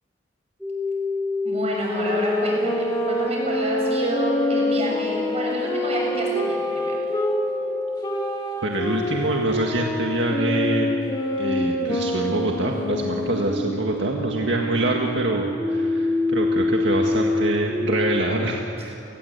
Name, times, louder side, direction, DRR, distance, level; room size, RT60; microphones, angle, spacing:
sound 1, 0.6-8.1 11.4-18.3, left 3 dB, ahead, 3.4 m, -27 dB
voice 1, 1.4-7.1, right 1 dB, 35° right, -2 dB, 7.1 m, -29 dB
sound 2, 1.8-7.4 8.0-13.6, equal, 20° left, 3.0 m, -26 dB
voice 2, 8.6-10.9 11.4-18.9, right 1 dB, 70° right, 0 dB, 1.9 m, -25 dB
29.5 x 20.0 x 8.4 m, 3.0 s
head